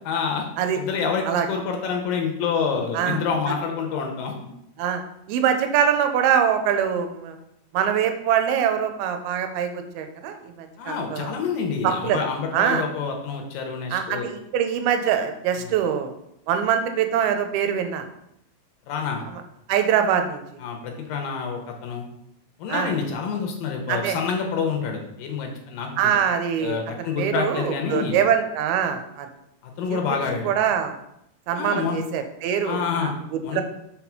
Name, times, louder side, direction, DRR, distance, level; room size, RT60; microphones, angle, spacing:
voice 1, 0.1-0.5 0.8-4.3 10.8-14.3 15.6-15.7 18.9-19.2 20.6-22.0 22.6-26.1 26.6-28.2 29.6-30.5 31.5-32.0 32.6-33.1 33.4-33.6, left 6 dB, 75° left, 2 dB, 2.4 m, -27 dB
voice 2, 5.3-7.4 7.7-11.3 11.8-12.2 12.5-12.9 13.9-16.1 16.5-18.0 19.3-19.4 19.7-20.4 22.7-22.9 23.9-24.2 26.0-29.3 29.9-30.9 31.5-33.6, right 8 dB, 90° right, 7 dB, 2.6 m, -24 dB
6.0 x 4.2 x 5.8 m, 0.79 s
omnidirectional pair, 4.3 m